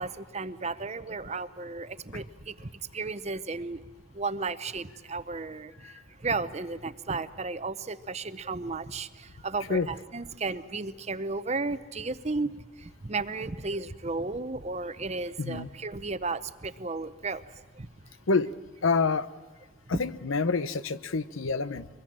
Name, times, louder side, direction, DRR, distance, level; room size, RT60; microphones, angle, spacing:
voice 1, 0.0-3.8 4.1-17.9, right 3 dB, 35° right, 13 dB, 0.7 m, -34 dB
voice 2, 15.4-15.7 18.3-18.5 18.8-19.3 19.9-21.9, left 4 dB, 90° left, 15 dB, 0.8 m, -27 dB
24.0 x 21.0 x 8.8 m, 1.2 s
head